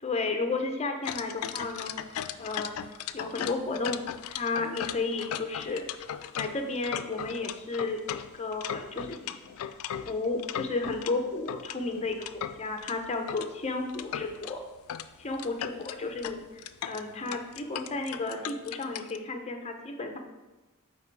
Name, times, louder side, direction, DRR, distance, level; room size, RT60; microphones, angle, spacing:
voice 1, 0.0-1.9 2.4-2.7 3.1-5.8 6.3-9.7 10.0-14.6 15.2-16.4 16.8-20.2, left 3 dB, 30° left, 5 dB, 0.6 m, -33 dB
sound 1, 1.0-11.1 11.5-13.5 13.9-14.5 14.9-15.1 15.3-19.2, left 9 dB, 80° left, 0.3 m, -37 dB
8.4 x 2.9 x 4.6 m, 1.1 s
head